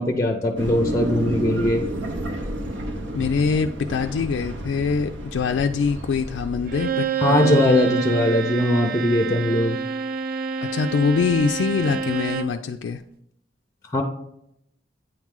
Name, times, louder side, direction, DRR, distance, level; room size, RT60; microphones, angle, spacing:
voice 1, 0.0-1.9 7.2-9.8 13.9-14.0, left 1 dB, 15° left, 4 dB, 0.5 m, -20 dB
sound 1, 0.6-6.9, right 1 dB, 85° right, 0.8 m, -31 dB
voice 2, 3.1-7.8 10.7-13.0, left 5 dB, 90° left, 6 dB, 0.3 m, -24 dB
Bowed string instrument, 6.7-12.6, right 7 dB, 50° right, 0.4 m, -27 dB
8.9 x 3.1 x 3.6 m, 0.76 s
head